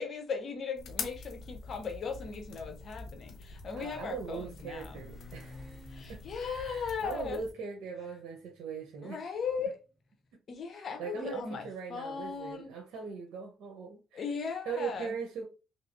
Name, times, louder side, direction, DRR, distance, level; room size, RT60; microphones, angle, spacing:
voice 1, 0.0-5.0 5.9-7.4 9.0-9.8 10.5-12.7 14.1-15.1, left 5 dB, 55° left, 0.9 m, -37 dB
sound 1, 0.8-7.5, left 4 dB, 75° left, 0.6 m, -45 dB
Motorcycle, 2.6-10.1, left 1 dB, 10° left, 0.9 m, -55 dB
voice 2, 3.7-6.2 6.5-9.2 10.7-14.2 14.7-15.5, right 5 dB, 85° right, 0.9 m, -40 dB
3.2 x 3.0 x 2.7 m
cardioid pair, 90°, 0 cm